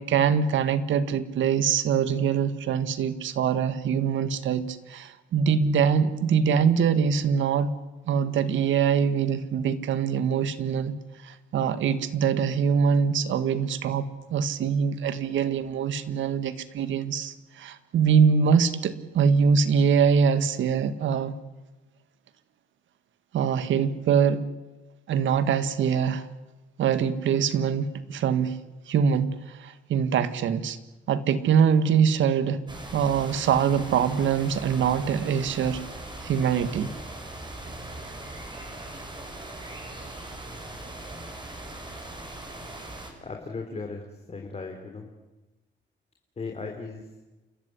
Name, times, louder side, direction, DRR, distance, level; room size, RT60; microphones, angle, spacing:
voice 1, 0.0-7.7 8.1-10.9 11.2-21.3 23.3-24.4 25.1-26.3 26.8-28.6 28.9-30.8 31.1-32.6 32.9-35.8 36.2-36.9, right 7 dB, 75° right, 13 dB, 1.8 m, -23 dB
sound 1, 32.7-43.1, right 1 dB, 25° right, 6.0 m, -40 dB
voice 2, 43.2-45.1 46.4-47.1, left 4 dB, 30° left, 3 dB, 3.5 m, -37 dB
30.0 x 14.0 x 9.9 m, 1.1 s
cardioid pair, 90°, 20 cm